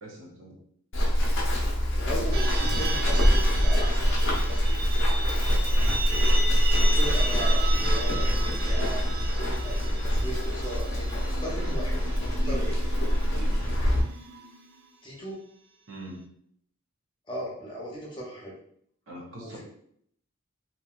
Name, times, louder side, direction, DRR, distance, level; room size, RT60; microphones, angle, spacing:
voice 1, 0.0-0.6 12.4-12.7 13.3-13.6 15.9-16.3 19.1-19.6, right 1 dB, 65° right, -2 dB, 0.8 m, -41 dB
Run, 0.9-14.0, equal, 60° left, 0.7 m, -24 dB
voice 2, 2.0-5.3 6.0-6.4 6.7-9.0 9.4-12.7 15.0-15.4 17.3-18.5 19.4-19.6, right 1 dB, 25° left, -3 dB, 0.7 m, -38 dB
sound 1, 2.3-14.9, right 2 dB, 50° right, 0.3 m, -36 dB
2.9 x 2.6 x 2.4 m, 0.66 s
head